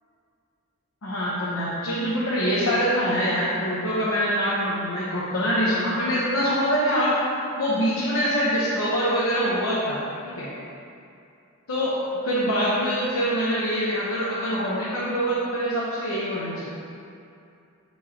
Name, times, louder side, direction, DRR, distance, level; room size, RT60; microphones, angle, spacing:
voice 1, 1.0-7.2 7.5-10.5 11.7-11.9 12.2-16.6, equal, 75° left, -8 dB, 1.0 m, -24 dB
8.8 x 4.5 x 2.9 m, 2.5 s
head